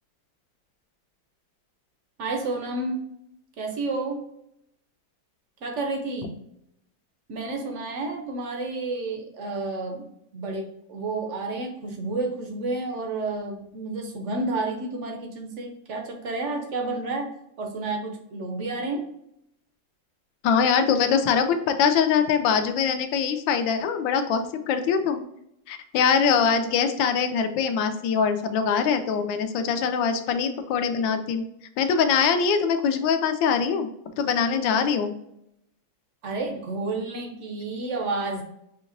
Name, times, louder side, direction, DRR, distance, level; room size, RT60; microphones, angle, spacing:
voice 1, 2.2-3.0 3.6-4.3 5.6-6.3 7.3-10.1 10.3-17.3 17.6-19.1 36.2-38.4, right 3 dB, 65° right, 3 dB, 0.7 m, -30 dB
voice 2, 20.4-25.2 25.7-31.4 31.8-33.9 34.2-35.1, left 6 dB, 80° left, 8 dB, 1.3 m, -23 dB
5.8 x 2.9 x 2.5 m, 0.77 s
omnidirectional pair, 2.1 m